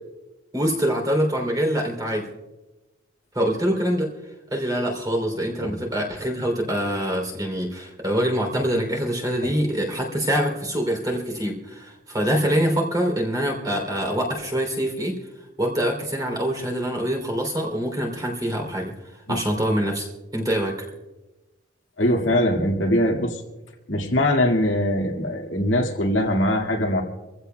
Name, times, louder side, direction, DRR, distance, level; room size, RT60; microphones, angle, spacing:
voice 1, 0.5-2.3 3.3-4.1 4.5-15.2 15.6-18.9 19.3-20.1 20.3-20.9, equal, 20° right, 2 dB, 3.2 m, -24 dB
voice 2, 22.0-23.4 23.9-27.0, left 1 dB, 70° left, 1 dB, 2.1 m, -22 dB
26.0 x 15.5 x 2.3 m, 1.1 s
head